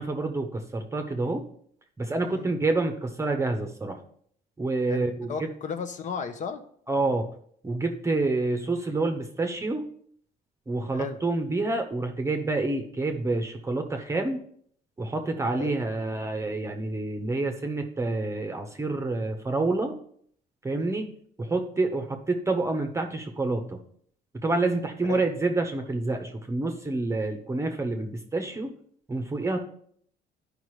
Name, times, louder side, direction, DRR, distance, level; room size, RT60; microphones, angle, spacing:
voice 1, 0.0-1.4 2.0-4.0 4.6-5.5 6.9-7.3 7.6-9.8 10.7-14.4 15.0-20.0 20.6-21.1 21.4-23.8 24.3-28.7 29.1-29.6, right 2 dB, 15° right, 5 dB, 0.9 m, -28 dB
voice 2, 4.9-6.6 8.1-8.2 10.9-11.2 15.6-15.8 20.8-21.0 25.1-25.2, left 5 dB, 45° left, 8 dB, 1.0 m, -35 dB
12.5 x 5.2 x 3.2 m, 0.63 s
cardioid pair, 110°, 17 cm